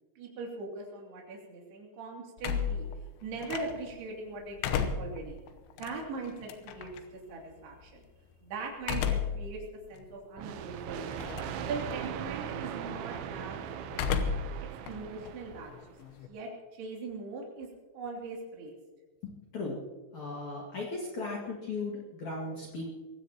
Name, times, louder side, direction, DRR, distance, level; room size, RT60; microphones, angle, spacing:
voice 1, 0.2-2.9 3.2-5.4 5.8-8.1 8.4-9.6 9.9-11.2 11.7-14.3 14.8-15.9 16.3-17.7 17.9-18.8, right 3 dB, 55° right, -1 dB, 4.5 m, -40 dB
sound 1, 2.4-4.0 4.4-7.0 8.8-9.5 10.0-10.1 11.1-11.6 11.9-12.3 13.9-14.6 14.9-16.3, left 7 dB, 90° left, 3.6 m, -33 dB
sound 2, 10.4-15.9, right 9 dB, 75° right, 3.0 m, -39 dB
voice 2, 19.2-19.8 20.1-22.9, left 3 dB, 50° left, -4 dB, 2.5 m, -37 dB
23.0 x 16.0 x 2.9 m, 1.3 s
omnidirectional pair, 5.8 m